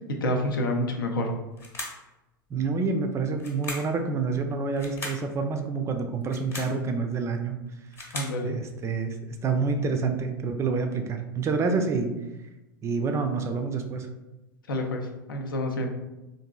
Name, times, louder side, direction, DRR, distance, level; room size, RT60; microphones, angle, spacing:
voice 1, 0.2-1.3 8.1-8.6 14.7-15.9, left 1 dB, 75° left, 3 dB, 0.5 m, -28 dB
sound 1, 1.6-2.1 3.4-4.0 4.8-5.3 6.2-6.8 7.7-8.4, left 2 dB, 20° left, 0.9 m, -37 dB
voice 2, 2.5-7.6 8.0-8.2 8.4-9.2 9.4-12.1 12.8-14.1, right 4 dB, 25° right, 5 dB, 0.4 m, -28 dB
3.7 x 2.5 x 2.3 m, 1.0 s
figure-of-eight pair, 85°, 11 cm